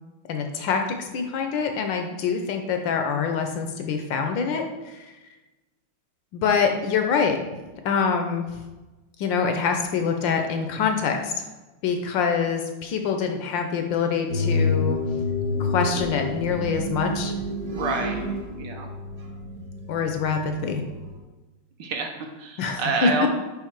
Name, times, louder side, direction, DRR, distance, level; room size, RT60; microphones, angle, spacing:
voice 1, 0.3-5.1 6.3-7.4 7.8-8.6 9.2-11.5 11.8-15.0 15.6-17.3 19.9-20.8 22.6-23.1, left 6 dB, 70° left, 5 dB, 1.3 m, -25 dB
sound 1, 14.3-21.2, left 2 dB, 45° right, 1.2 m, -28 dB
voice 2, 17.7-18.3 18.6-18.9 21.8-23.3, right 4 dB, 65° right, 3 dB, 1.3 m, -28 dB
5.7 x 4.9 x 4.5 m, 1.1 s
omnidirectional pair, 2.3 m